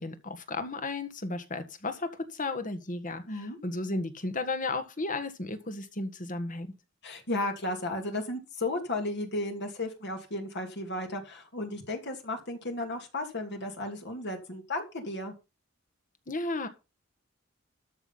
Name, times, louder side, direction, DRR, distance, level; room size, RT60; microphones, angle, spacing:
voice 1, 0.0-6.7 16.3-16.7, left 2 dB, 40° left, 10 dB, 1.6 m, -34 dB
voice 2, 3.3-3.6 7.0-15.3, left 2 dB, 55° left, 4 dB, 2.5 m, -34 dB
13.0 x 5.9 x 5.6 m, 0.29 s
head